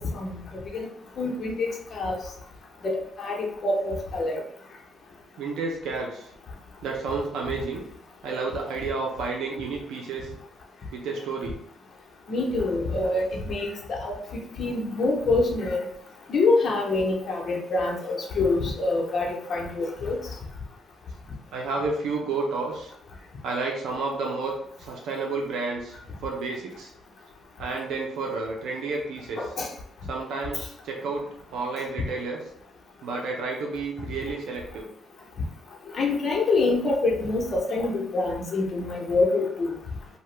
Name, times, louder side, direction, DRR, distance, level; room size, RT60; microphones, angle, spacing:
voice 1, 1.2-2.2 2.8-4.4 12.3-14.2 14.6-15.8 16.3-20.2 29.4-29.7 35.9-39.7, left 3 dB, 50° left, 0 dB, 0.8 m, -25 dB
voice 2, 5.4-6.3 6.8-7.8 8.2-10.3 10.9-11.6 21.5-22.9 23.4-26.9 27.6-29.4 30.1-32.4 33.0-34.9, right 3 dB, 85° right, 0 dB, 0.6 m, -31 dB
2.8 x 2.2 x 3.3 m, 0.69 s
cardioid pair, 90°, 0 cm